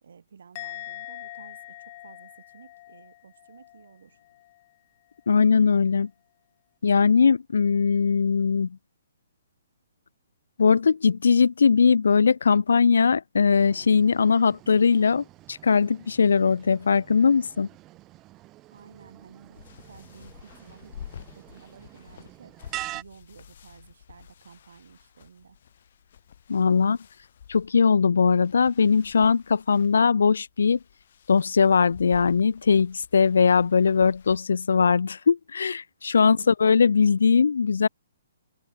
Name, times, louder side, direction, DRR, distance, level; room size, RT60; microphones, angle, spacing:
voice 1, 0.0-4.2 18.7-21.0 21.3-22.5 22.9-25.6 36.2-36.5, right 6 dB, 60° right, 4.0 m, -52 dB
Musical instrument, 0.5-3.9 4.2-4.6, left 17 dB, 25° left, 0.6 m, -43 dB
voice 2, 5.3-6.1 6.8-8.8 10.6-17.7 26.5-27.0 27.5-30.8 31.3-37.9, left 5 dB, 85° left, 0.4 m, -20 dB
sound 1, 13.6-23.0, right 17 dB, 15° right, 1.8 m, -45 dB
sound 2, 18.8-34.4, left 9 dB, 40° left, 5.1 m, -50 dB
open air
hypercardioid pair, 180°, 0 cm